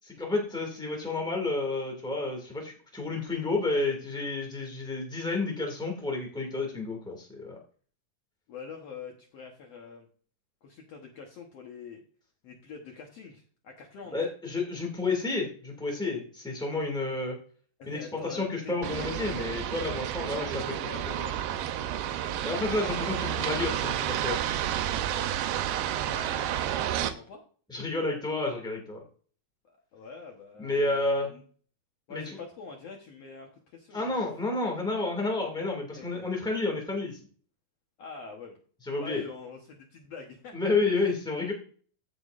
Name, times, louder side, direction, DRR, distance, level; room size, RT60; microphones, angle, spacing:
voice 1, 0.0-7.6 14.1-17.4 17.9-20.4 22.4-24.4 27.7-29.0 30.6-31.3 32.1-32.2 33.9-37.2 38.8-39.2 40.5-41.5, left 3 dB, 5° left, 0 dB, 0.5 m, -30 dB
voice 2, 3.0-3.4 8.5-10.1 10.6-12.0 12.4-14.2 17.8-19.1 20.4-21.4 23.2-23.4 26.0-27.4 29.6-31.4 32.1-34.3 35.9-36.3 38.0-38.6 38.9-40.6, left 4 dB, 65° left, 1 dB, 1.6 m, -45 dB
sound 1, 18.8-27.1, right 11 dB, 80° right, 2.4 m, -31 dB
14.5 x 6.1 x 2.5 m, 0.43 s
omnidirectional pair, 4.3 m